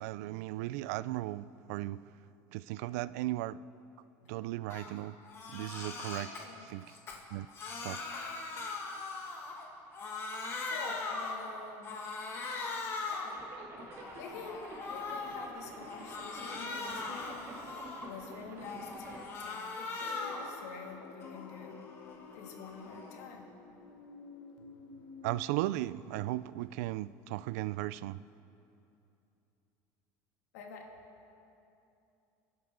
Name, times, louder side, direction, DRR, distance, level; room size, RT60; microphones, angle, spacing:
voice 1, 0.0-2.0 2.5-3.6 4.3-5.2 5.5-6.3 6.7-6.9 7.3-7.5 7.8-8.0 25.2-28.2, right 16 dB, 80° right, 18 dB, 0.4 m, -36 dB
Crying sobbing, 4.7-4.9 5.2-6.4 6.9-9.7 9.9-11.5 11.8-13.4 13.8-15.5 15.9-18.2 18.6-20.5 20.9-23.3, left 3 dB, 30° left, 2.1 m, -40 dB
voice 2, 6.2-6.7 10.6-12.0 13.0-13.4 14.2-17.5 18.0-21.8 22.3-23.5 30.5-31.0, left 5 dB, 90° left, 1 dB, 2.4 m, -47 dB
Zipper (clothing), 13.3-19.2, right 1 dB, 40° right, 2.6 m, -49 dB
sound 1, 20.0-27.9 28.1-28.4, left 5 dB, 60° left, 1.2 m, -52 dB
27.5 x 11.5 x 3.8 m, 2.8 s
cardioid pair, 145°, 8 cm